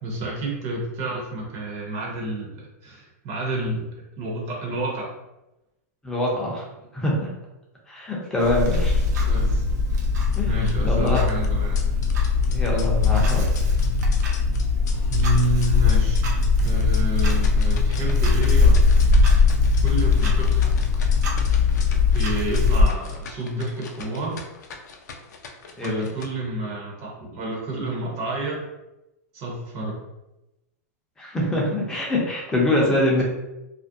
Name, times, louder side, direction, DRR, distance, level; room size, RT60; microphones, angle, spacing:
voice 1, 0.0-3.9 4.2-5.2 9.3-9.6 10.5-11.8 15.1-16.2 16.6-19.3 19.8-20.8 22.1-24.5 25.8-28.7 29.3-30.0, right 2 dB, 35° right, -2 dB, 0.7 m, -29 dB
voice 2, 6.0-6.7 6.9-7.3 7.9-9.0 10.4-11.2 12.5-13.4 14.3-14.4 25.8-26.1 31.2-33.2, left 1 dB, 10° left, -3 dB, 0.6 m, -24 dB
Clock, 8.4-22.9, left 4 dB, 85° right, 0.5 m, -20 dB
sound 1, 10.2-26.2, left 5 dB, 80° left, 0.4 m, -42 dB
2.4 x 2.0 x 2.6 m, 0.94 s
supercardioid pair, 145°, 9 cm